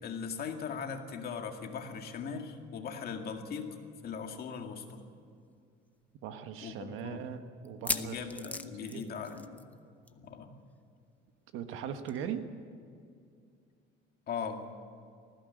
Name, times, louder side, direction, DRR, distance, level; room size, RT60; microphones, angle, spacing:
voice 1, 0.0-3.8 4.0-5.0 6.6-7.2 7.9-9.6 10.1-10.5 14.3-14.6, left 6 dB, 50° left, 4 dB, 2.1 m, -39 dB
sound 1, 5.0-5.1 5.4-5.5 6.1-6.2 7.6-9.8 10.1-10.3 10.5-10.6 12.1-12.2, left 2 dB, 5° left, 0.7 m, -37 dB
voice 2, 6.2-8.5 8.8-9.0 11.5-12.5, right 8 dB, 85° right, 8 dB, 1.5 m, -40 dB
19.5 x 15.5 x 9.3 m, 2.3 s
cardioid pair, 140°, 20 cm